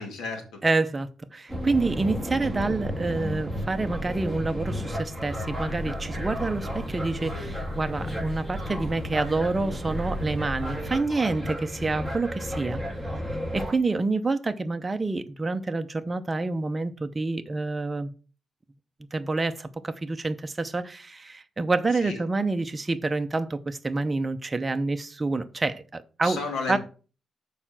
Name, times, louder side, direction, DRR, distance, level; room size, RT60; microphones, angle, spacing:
voice 1, 0.0-0.4 22.0-22.2 26.2-26.8, left 4 dB, 90° left, 2.4 m, -32 dB
voice 2, 0.6-12.8 13.5-18.1 19.1-26.4 26.7-26.8, right 3 dB, 20° right, 0.7 m, -28 dB
sound 1, 1.5-13.7, equal, 15° left, 2.9 m, -33 dB
sound 2, 5.3-10.9, left 1 dB, 35° left, 3.1 m, -38 dB
6.8 x 5.0 x 5.9 m
cardioid pair, 135°, 0 cm